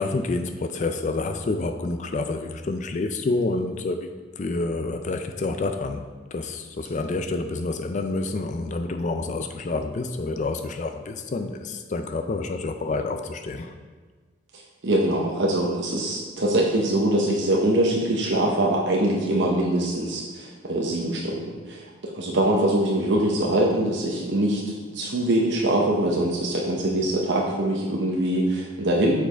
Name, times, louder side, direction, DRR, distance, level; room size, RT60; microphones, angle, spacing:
voice 1, 0.0-4.1 4.4-6.0 6.3-13.7, left 3 dB, 40° left, 7 dB, 0.4 m, -28 dB
voice 2, 14.8-29.3, right 1 dB, 70° right, -2 dB, 0.8 m, -23 dB
7.1 x 4.6 x 4.3 m, 1.4 s
head